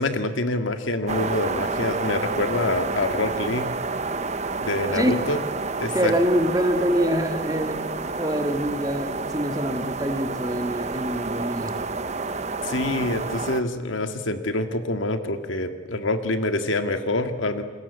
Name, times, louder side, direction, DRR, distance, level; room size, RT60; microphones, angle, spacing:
voice 1, 0.0-3.7 4.6-5.4 5.8-6.1 12.6-17.6, left 2 dB, 75° left, 8 dB, 2.0 m, -26 dB
sound 1, 1.1-13.6, right 3 dB, 35° right, 1.0 m, -29 dB
voice 2, 5.9-7.8 8.2-11.8, equal, 20° right, 6 dB, 1.9 m, -25 dB
28.5 x 20.5 x 8.3 m, 1.4 s
head